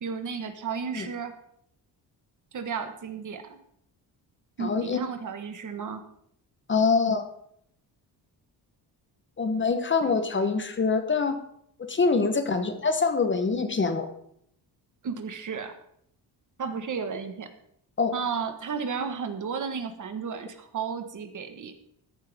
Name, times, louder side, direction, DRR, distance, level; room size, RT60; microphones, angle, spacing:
voice 1, 0.0-1.3 2.5-3.6 4.6-6.0 10.0-10.1 15.0-15.8 16.6-17.5 18.1-21.7, right 6 dB, 45° right, 8 dB, 1.4 m, -33 dB
voice 2, 4.6-5.0 6.7-7.2 9.4-11.4 11.8-14.1 18.0-18.1, left 4 dB, 30° left, 8 dB, 1.0 m, -24 dB
14.0 x 11.0 x 3.5 m, 0.71 s
cardioid pair, 150°, 41 cm